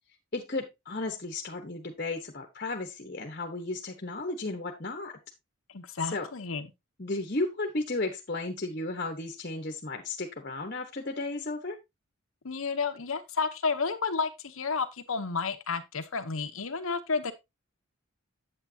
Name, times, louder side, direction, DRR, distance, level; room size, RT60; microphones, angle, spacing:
voice 1, 0.3-5.2 6.1-6.3 7.0-11.8, left 2 dB, 40° left, 1.1 m, -34 dB
voice 2, 5.7-6.7 12.4-17.3, left 4 dB, 65° left, 0.9 m, -31 dB
8.6 x 8.3 x 2.8 m
head